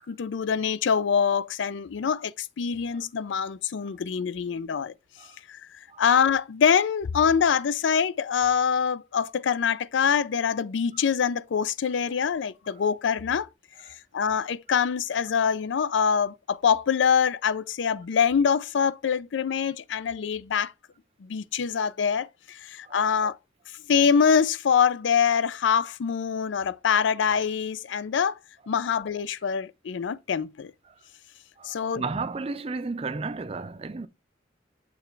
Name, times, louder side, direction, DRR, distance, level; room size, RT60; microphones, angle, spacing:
voice 1, 0.1-4.9 5.5-5.6 6.0-13.5 14.1-20.7 21.2-23.4 23.9-28.4 28.7-30.7 31.6-32.0, left 7 dB, 85° left, 0.4 m, -24 dB
voice 2, 31.6-34.1, right 4 dB, 30° right, 0.5 m, -33 dB
7.0 x 3.2 x 4.6 m
head